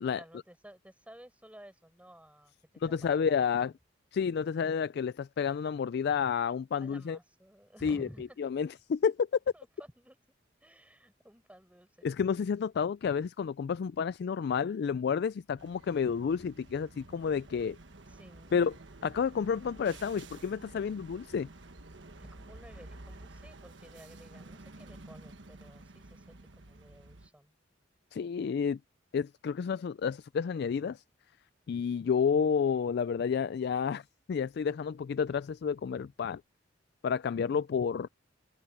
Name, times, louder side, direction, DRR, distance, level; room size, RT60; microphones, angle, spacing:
voice 1, 0.1-3.3 3.6-3.8 6.8-8.4 9.5-10.2 10.6-12.1 18.1-18.6 22.2-27.6, equal, 5° right, 7.7 m, -54 dB
voice 2, 2.8-3.7 4.1-7.2 7.8-8.1 8.4-9.3 12.0-17.8 18.5-18.7 19.0-21.5 28.1-28.8 29.1-31.0 31.7-34.0 34.3-36.4 37.0-38.1, left 6 dB, 55° left, 0.3 m, -30 dB
sound 1, 15.6-27.3, right 2 dB, 65° right, 1.4 m, -51 dB
head